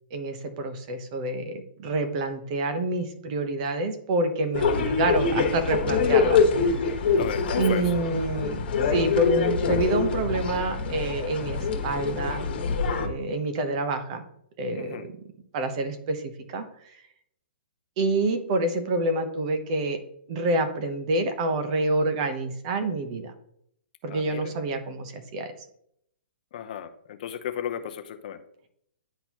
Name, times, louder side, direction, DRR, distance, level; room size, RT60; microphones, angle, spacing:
voice 1, 0.1-6.8 7.6-8.6 8.9-12.5 12.9-14.2 14.6-15.1 15.5-16.7 18.0-20.0 20.3-23.3 24.0-25.5, right 2 dB, 35° right, 8 dB, 0.9 m, -27 dB
sound 1, 4.5-13.1, left 5 dB, 60° left, 1.5 m, -25 dB
voice 2, 7.2-7.8 14.7-15.1 24.1-24.5 26.5-28.4, left 9 dB, 45° left, 7 dB, 0.7 m, -34 dB
10.0 x 3.9 x 3.0 m, 0.72 s
hypercardioid pair, 165°, 6 cm